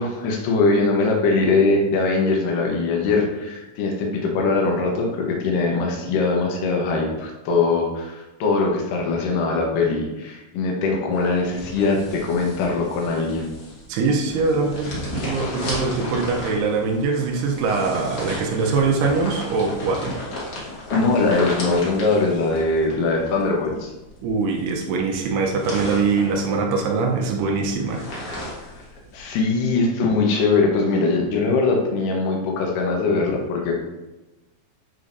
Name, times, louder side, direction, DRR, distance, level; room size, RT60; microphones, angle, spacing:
voice 1, 0.0-13.5 15.4-15.6 20.9-23.9 28.6-28.7 29.1-33.8, left 3 dB, 65° left, 0 dB, 2.3 m, -21 dB
sound 1, 11.1-29.4, left 1 dB, 50° left, 2.0 m, -35 dB
voice 2, 13.9-20.1 24.2-28.1, right 4 dB, 80° right, 1 dB, 2.7 m, -23 dB
8.8 x 4.9 x 2.6 m, 1.1 s
omnidirectional pair, 4.8 m